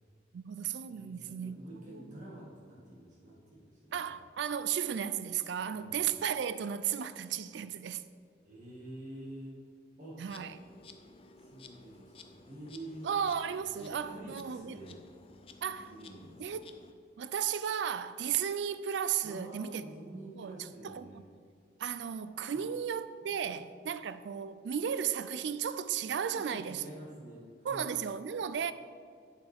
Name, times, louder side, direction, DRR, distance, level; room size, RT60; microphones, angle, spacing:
voice 1, 0.3-1.6 1.9-2.0 3.9-8.0 10.2-10.5 13.0-14.8 15.6-15.9 16.4-16.6 17.2-19.8 20.3-20.5 20.8-21.2 21.8-26.8 27.6-28.7, right 8 dB, 70° right, 0.3 m, -34 dB
voice 2, 0.9-4.2 5.7-5.9 8.4-9.6 10.0-10.2 11.4-13.1 13.8-15.0 15.8-16.6 19.2-21.3 22.5-22.6 23.5-23.6 26.3-28.0, right 1 dB, 40° right, 1.8 m, -48 dB
Insect, 10.2-16.9, left 3 dB, 30° left, 0.4 m, -55 dB
8.2 x 7.2 x 3.5 m
head